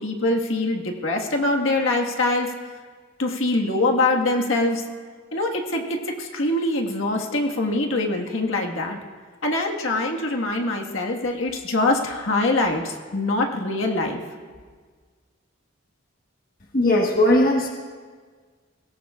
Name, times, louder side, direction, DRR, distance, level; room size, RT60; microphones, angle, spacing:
voice 1, 0.0-2.5 3.2-4.8 5.3-9.0 9.4-14.2, left 2 dB, 75° left, 1 dB, 1.6 m, -23 dB
voice 2, 16.7-17.7, left 1 dB, 45° left, 0 dB, 1.3 m, -18 dB
22.5 x 17.5 x 2.4 m, 1.6 s
head